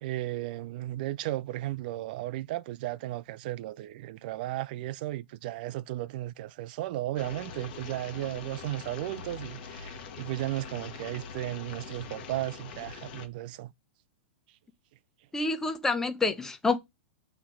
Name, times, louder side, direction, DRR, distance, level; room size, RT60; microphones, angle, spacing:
voice 1, 0.0-13.7, right 15 dB, 50° right, 0.4 m, -35 dB
sound 1, 7.2-13.3, left 6 dB, 50° left, 1.2 m, -43 dB
voice 2, 15.3-16.8, left 3 dB, 5° left, 0.7 m, -28 dB
5.8 x 3.2 x 5.7 m
hypercardioid pair, 145°, 6 cm